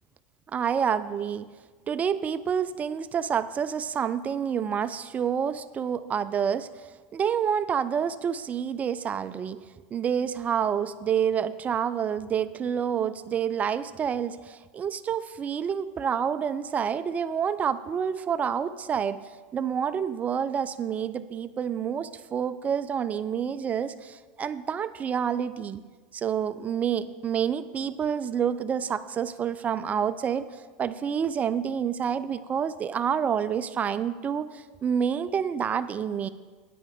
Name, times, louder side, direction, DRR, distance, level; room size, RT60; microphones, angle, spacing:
voice 1, 0.5-1.5 1.9-6.7 7.1-9.6 9.9-19.2 19.5-25.8 26.1-30.5 30.8-36.3, right 7 dB, 25° right, 14 dB, 0.4 m, -28 dB
10.0 x 8.5 x 5.2 m, 1.4 s
supercardioid pair, 110°, 5 cm